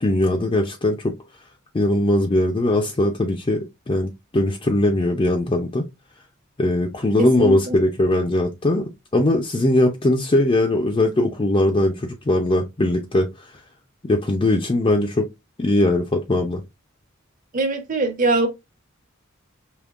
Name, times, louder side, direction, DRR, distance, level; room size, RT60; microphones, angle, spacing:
voice 1, 0.0-1.1 1.7-5.8 6.6-13.3 14.1-15.3 15.6-16.6, left 1 dB, 25° left, 0.5 m, -20 dB
voice 2, 7.2-7.7 17.5-18.5, right 2 dB, 40° right, 1.0 m, -22 dB
5.2 x 2.9 x 2.4 m
head